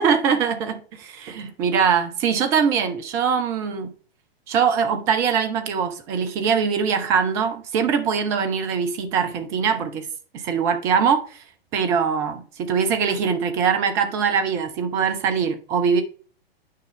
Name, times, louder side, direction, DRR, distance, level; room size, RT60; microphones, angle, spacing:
voice 1, 0.0-3.9 4.5-10.1 10.3-11.4 11.7-16.0, right 6 dB, 10° right, 0.3 m, -22 dB
9.1 x 5.3 x 3.7 m
figure-of-eight pair, 110°, 30 cm